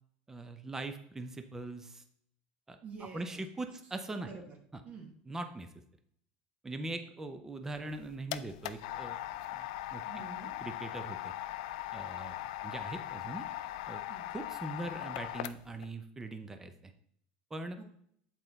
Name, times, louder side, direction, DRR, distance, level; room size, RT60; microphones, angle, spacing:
voice 1, 0.3-2.0 2.7-2.8 3.1-4.3 4.7-4.8 5.3-5.7 6.6-9.2 9.5-10.0 10.6-11.3 11.9-12.4 12.6-13.4 13.9-14.0 14.3-16.9 17.5-17.8, right 2 dB, 10° right, 8 dB, 0.6 m, -41 dB
voice 2, 2.8-3.4 4.2-4.5 4.8-5.1 10.1-10.5 14.1-14.3 17.8-17.9, right 4 dB, 35° right, 3 dB, 1.2 m, -47 dB
sound 1, 7.8-15.9, left 14 dB, 80° left, 0.4 m, -40 dB
7.6 x 4.4 x 3.9 m, 0.68 s
supercardioid pair, 135°, 4 cm